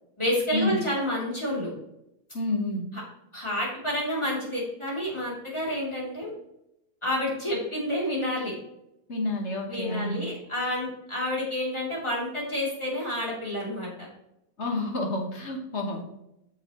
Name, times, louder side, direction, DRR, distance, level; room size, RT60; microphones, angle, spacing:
voice 1, 0.2-1.7 3.3-6.3 7.0-8.5 9.7-13.9, left 1 dB, 15° left, -5 dB, 3.1 m, -29 dB
voice 2, 2.3-2.8 9.1-10.2 14.6-16.0, left 2 dB, 40° left, 1 dB, 1.5 m, -29 dB
9.2 x 6.6 x 3.1 m, 0.85 s
omnidirectional pair, 2.1 m